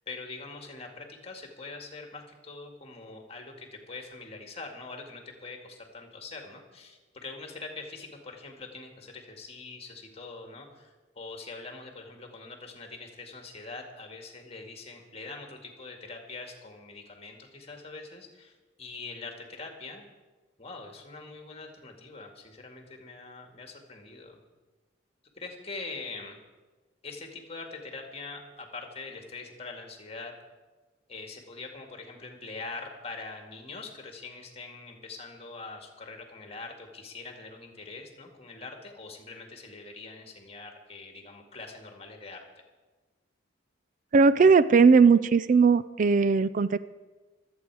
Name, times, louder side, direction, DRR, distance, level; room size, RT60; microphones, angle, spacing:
voice 1, 0.1-20.1 20.6-24.4 25.4-26.4 27.0-30.3 31.1-42.4, left 3 dB, 35° left, 3 dB, 2.0 m, -43 dB
voice 2, 44.1-46.8, right 5 dB, 45° right, 15 dB, 0.4 m, -19 dB
25.5 x 8.7 x 4.7 m, 1.3 s
head